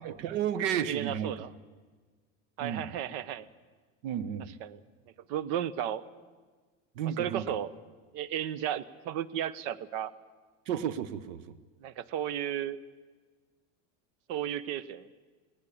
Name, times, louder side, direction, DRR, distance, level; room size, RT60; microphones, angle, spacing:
voice 1, 0.0-1.3 2.6-2.9 4.0-4.5 7.0-7.5 10.7-11.4, right 9 dB, 85° right, 16 dB, 1.2 m, -32 dB
voice 2, 0.9-1.5 2.6-3.5 4.6-4.8 5.3-6.1 7.2-7.7 8.1-10.1 11.8-12.8 14.3-15.1, right 10 dB, 65° right, 18 dB, 1.0 m, -34 dB
19.0 x 18.0 x 8.5 m, 1.4 s
supercardioid pair, 140°, 37 cm